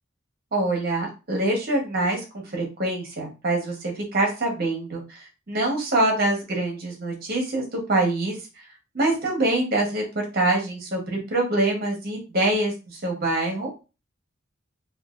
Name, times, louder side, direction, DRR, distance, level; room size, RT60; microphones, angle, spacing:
voice 1, 0.5-5.2 5.5-8.4 8.9-10.0 10.3-13.7, right 2 dB, 50° right, 1 dB, 1.1 m, -25 dB
3.2 x 2.6 x 2.5 m, 0.30 s
head